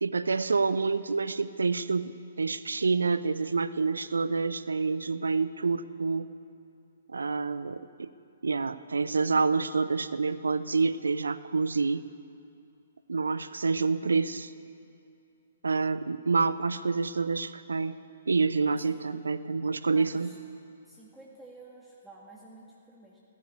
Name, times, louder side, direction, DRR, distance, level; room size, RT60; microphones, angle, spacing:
voice 1, 0.0-2.1 2.4-6.3 7.1-8.1 8.4-12.0 13.1-14.5 15.6-18.0 18.3-20.3, right 4 dB, 70° right, 15 dB, 0.6 m, -27 dB
voice 2, 19.9-20.4 20.8-23.2, right 2 dB, 5° right, -5 dB, 1.9 m, -51 dB
15.5 x 9.9 x 8.4 m, 2.6 s
figure-of-eight pair, 125°, 0 cm